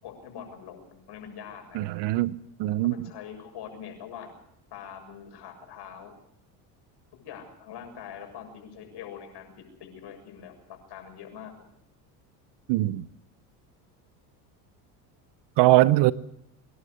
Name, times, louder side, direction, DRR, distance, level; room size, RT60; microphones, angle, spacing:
voice 1, 0.0-1.8 2.8-4.4 4.7-6.1 7.2-10.5 10.9-11.5, left 8 dB, 60° left, 7.3 m, -43 dB
voice 2, 1.7-3.1 12.7-13.0 15.6-16.1, right 17 dB, 60° right, 0.9 m, -22 dB
25.5 x 11.0 x 9.8 m
supercardioid pair, 80°, 47 cm